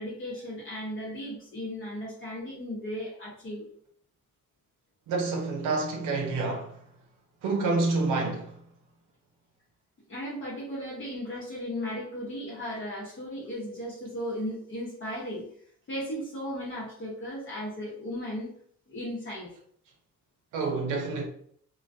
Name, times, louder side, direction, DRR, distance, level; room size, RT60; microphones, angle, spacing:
voice 1, 0.0-3.7 10.1-15.4 15.9-18.5 18.9-19.5, equal, 40° left, 0.9 m, -36 dB
voice 2, 5.1-6.7 7.4-8.5 20.5-21.3, right 3 dB, 85° right, 0.6 m, -28 dB
2.3 x 2.2 x 2.6 m
cardioid pair, 90°, 30 cm